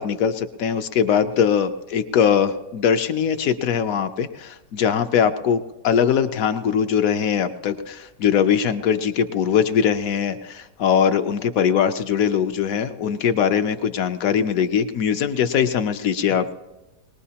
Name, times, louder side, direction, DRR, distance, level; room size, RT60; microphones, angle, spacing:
voice 1, 0.0-16.6, left 8 dB, 65° left, 10 dB, 0.9 m, -21 dB
21.0 x 19.0 x 2.8 m, 1.1 s
omnidirectional pair, 1.9 m